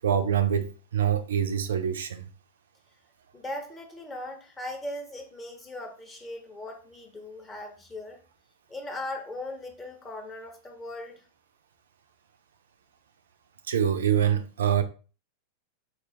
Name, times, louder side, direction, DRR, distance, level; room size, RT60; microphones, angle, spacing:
voice 1, 0.0-2.2 13.7-14.8, right 9 dB, 65° right, 0.3 m, -25 dB
voice 2, 3.3-8.2 8.7-11.2, left 1 dB, 15° left, 0.8 m, -39 dB
4.1 x 2.2 x 2.7 m
figure-of-eight pair, 90°, 0 cm